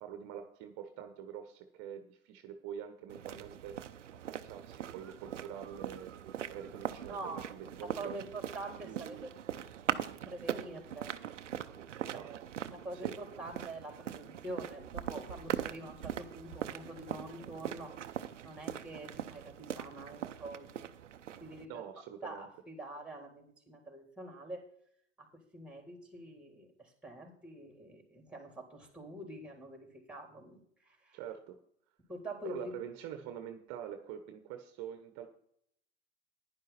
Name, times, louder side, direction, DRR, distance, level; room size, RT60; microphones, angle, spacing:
voice 1, 0.0-3.8 4.1-6.1 6.5-8.2 8.8-9.3 12.0-12.3 13.0-13.1 21.7-22.5 31.1-31.6 32.4-35.3, right 9 dB, 50° right, 7 dB, 1.2 m, -45 dB
sound 1, 3.1-21.7, right 9 dB, 90° right, 0.7 m, -41 dB
voice 2, 7.1-7.5 7.9-9.2 10.2-11.1 12.7-17.9 18.4-20.9 21.4-21.8 22.2-24.6 25.2-25.3 25.5-31.2 32.1-32.8, right 1 dB, 5° right, 2 dB, 3.8 m, -45 dB
10.5 x 10.5 x 4.2 m, 0.68 s
hypercardioid pair, 85°, 35 cm